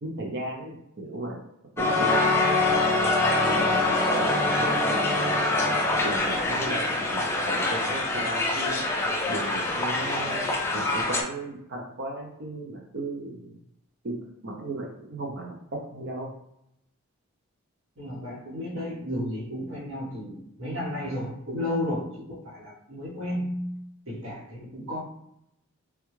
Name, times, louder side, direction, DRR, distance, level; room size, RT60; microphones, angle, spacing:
voice 1, 0.0-1.4 1.8-2.5 3.3-5.3 6.0-8.8 9.3-13.6 14.0-14.2 14.4-16.3, right 1 dB, 50° right, 0 dB, 0.5 m, -36 dB
Crowd, 1.8-11.2, left 2 dB, 10° left, 0.4 m, -24 dB
voice 2, 18.0-23.8 24.1-25.0, left 1 dB, 65° right, -7 dB, 1.3 m, -33 dB
3.4 x 2.3 x 3.0 m, 0.79 s
head